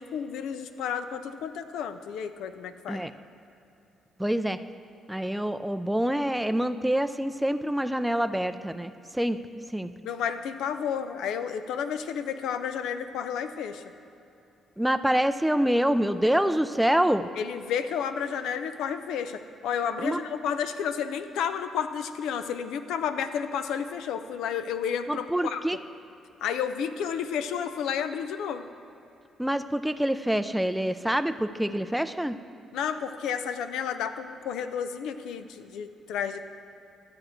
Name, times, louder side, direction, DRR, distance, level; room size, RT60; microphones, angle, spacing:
voice 1, 0.0-3.0 10.0-13.8 17.4-25.7 26.4-28.7 32.7-36.4, left 7 dB, 85° left, 10 dB, 0.5 m, -31 dB
voice 2, 4.2-4.6 5.1-9.4 9.7-9.9 14.8-17.3 20.0-20.2 25.1-25.8 29.4-32.4, equal, 5° right, 11 dB, 0.4 m, -26 dB
13.0 x 7.8 x 4.4 m, 2.8 s
cardioid pair, 90°, 0 cm